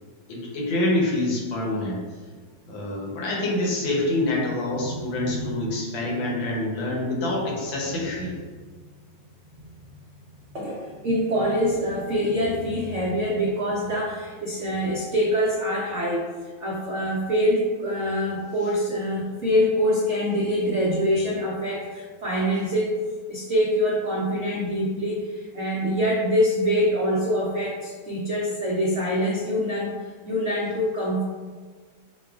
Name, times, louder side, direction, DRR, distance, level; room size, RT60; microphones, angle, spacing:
voice 1, 0.3-2.0 2.7-8.4, left 1 dB, 80° left, -2 dB, 1.6 m, -26 dB
voice 2, 4.8-5.6 10.5-16.2 16.6-22.9 23.3-29.9 30.2-31.2, equal, 85° right, -5 dB, 0.6 m, -25 dB
6.5 x 2.3 x 2.3 m, 1.5 s
omnidirectional pair, 2.1 m